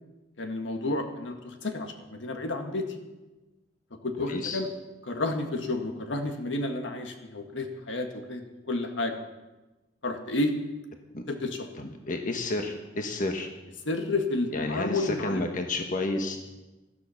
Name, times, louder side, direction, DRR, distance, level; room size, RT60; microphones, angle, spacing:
voice 1, 0.4-2.8 4.0-4.7 5.0-9.1 10.0-10.5 11.3-11.7 13.8-15.5, left 2 dB, 80° left, 5 dB, 1.7 m, -31 dB
voice 2, 4.3-4.6 11.1-11.2 11.8-13.5 14.5-16.4, left 2 dB, 45° left, 4 dB, 1.4 m, -31 dB
13.5 x 13.5 x 5.8 m, 1.1 s
head